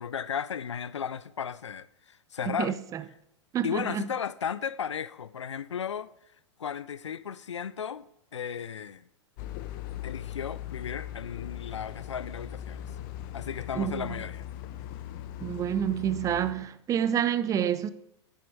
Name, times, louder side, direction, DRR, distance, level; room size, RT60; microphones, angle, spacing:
voice 1, 0.0-2.8 3.6-6.1 6.6-8.0 8.3-9.0 10.0-12.8 13.3-14.5, left 7 dB, 80° left, 0.4 m, -35 dB
voice 2, 2.5-3.0 3.5-4.0 13.7-14.2 15.4-17.9, right 9 dB, 20° right, 0.6 m, -28 dB
sound 1, 9.4-16.5, left 12 dB, 45° left, 0.8 m, -39 dB
10.5 x 9.3 x 4.7 m
figure-of-eight pair, 105°, 15 cm